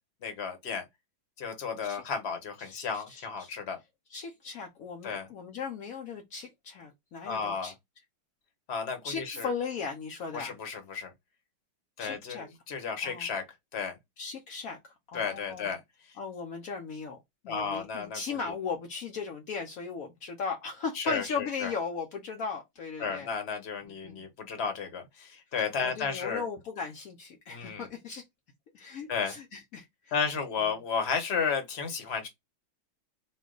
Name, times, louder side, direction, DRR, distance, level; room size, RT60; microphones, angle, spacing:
voice 1, 0.2-0.8 1.4-3.8 5.0-5.3 7.3-7.7 8.7-9.5 10.3-11.1 12.0-13.4 13.7-14.0 15.1-15.8 17.5-18.5 20.9-21.7 23.0-26.5 27.5-27.9 29.1-29.3 30.1-32.3, left 6 dB, 45° left, 1.0 m, -33 dB
voice 2, 2.6-3.5 4.1-7.7 9.0-10.5 12.0-12.5 13.0-13.3 14.2-15.7 16.2-17.2 17.4-23.3 24.0-24.2 25.8-28.2 28.7-30.1, left 5 dB, 70° left, 0.8 m, -37 dB
4.3 x 2.3 x 3.8 m
omnidirectional pair, 2.2 m